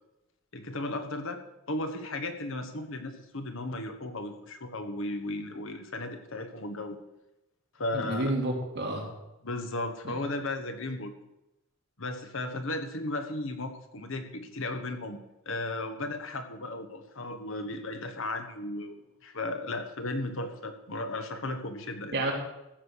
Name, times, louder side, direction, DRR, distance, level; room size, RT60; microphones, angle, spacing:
voice 1, 0.5-1.4 1.7-7.0 7.7-8.3 9.4-11.1 12.0-15.2 15.4-22.1, left 2 dB, 65° left, 7 dB, 1.4 m, -35 dB
voice 2, 7.9-9.1 10.0-10.1 22.1-22.3, right 2 dB, 55° right, -1 dB, 3.2 m, -30 dB
15.0 x 6.7 x 6.6 m, 0.91 s
head